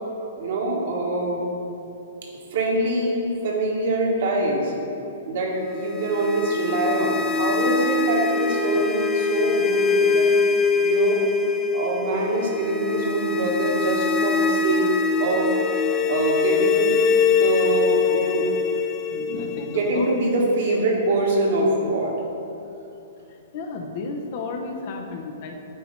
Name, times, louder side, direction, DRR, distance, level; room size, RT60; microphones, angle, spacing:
voice 1, 0.4-1.4 2.5-4.7 5.3-10.3 10.8-11.2 11.7-14.9 15.2-15.5 16.0-17.0 17.3-18.5 19.7-22.1, right 2 dB, 65° right, -2 dB, 1.5 m, -24 dB
sound 1, 5.7-20.7, left 4 dB, 20° left, 0.5 m, -23 dB
voice 2, 19.1-20.1 23.5-25.6, left 3 dB, 50° left, 3 dB, 0.7 m, -33 dB
8.4 x 3.0 x 5.1 m, 2.8 s
hypercardioid pair, 120°, 0 cm